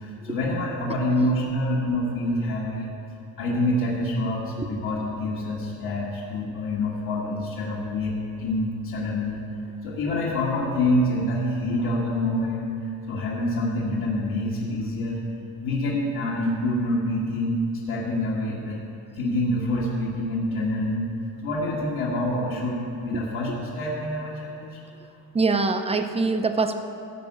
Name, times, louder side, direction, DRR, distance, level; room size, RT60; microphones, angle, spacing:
voice 1, 0.0-2.9 3.4-9.4 9.8-15.2 15.6-17.5 17.9-18.8 19.2-21.1 21.4-24.8, left 1 dB, 70° left, -6 dB, 1.9 m, -26 dB
voice 2, 25.3-26.8, right 3 dB, 15° right, 7 dB, 0.6 m, -23 dB
14.5 x 5.2 x 8.5 m, 2.7 s
cardioid pair, 135°, 36 cm